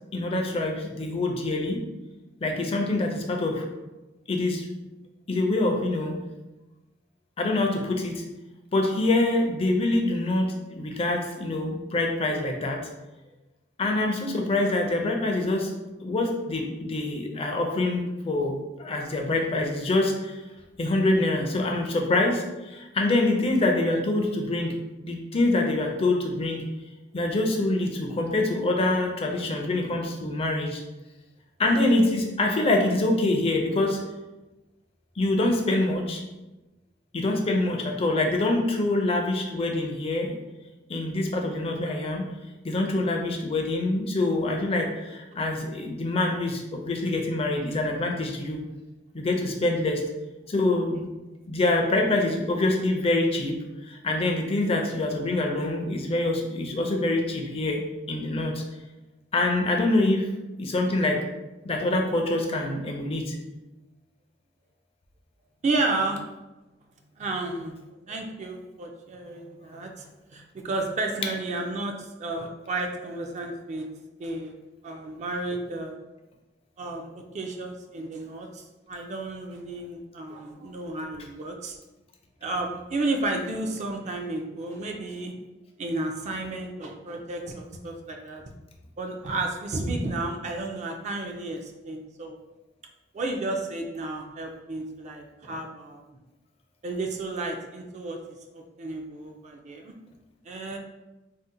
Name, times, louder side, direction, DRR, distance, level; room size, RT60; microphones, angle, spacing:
voice 1, 0.1-1.8 2.4-3.7 4.3-4.7 5.3-6.1 7.4-8.2 8.7-12.8 13.8-15.7 16.0-20.4 20.8-24.7 25.0-26.6 27.1-30.8 31.6-34.0 35.2-36.2 37.1-40.3 40.9-42.3 42.6-48.6 49.1-50.0 50.5-51.1 51.5-53.6 53.9-57.8 58.1-58.6 59.3-60.3 60.6-61.2 61.6-63.3, left 2 dB, 30° left, 2 dB, 0.4 m, -25 dB
voice 2, 65.6-66.2 67.2-67.7 68.1-70.1 70.3-73.9 74.2-74.6 74.8-76.0 76.8-81.8 82.4-85.3 85.8-88.4 89.0-92.4 93.1-96.2 96.8-98.2 98.5-99.9 100.5-100.8, right 2 dB, 40° right, 2 dB, 0.3 m, -32 dB
2.7 x 2.0 x 3.7 m, 1.1 s
head